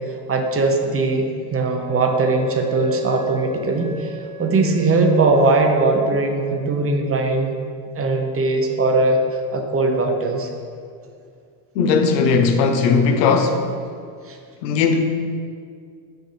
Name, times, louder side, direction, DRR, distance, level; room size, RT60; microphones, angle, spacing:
voice 1, 0.1-7.6 7.9-9.2 9.5-10.5 14.3-14.4, right 3 dB, 30° right, 3 dB, 0.8 m, -20 dB
Wind instrument woodwind instrument, 1.8-6.5, right 3 dB, 75° right, 1.5 m, -37 dB
voice 2, 11.8-13.7 14.6-15.0, left 5 dB, 85° left, 6 dB, 0.7 m, -17 dB
6.3 x 5.2 x 3.3 m, 2.2 s
hypercardioid pair, 70°, 49 cm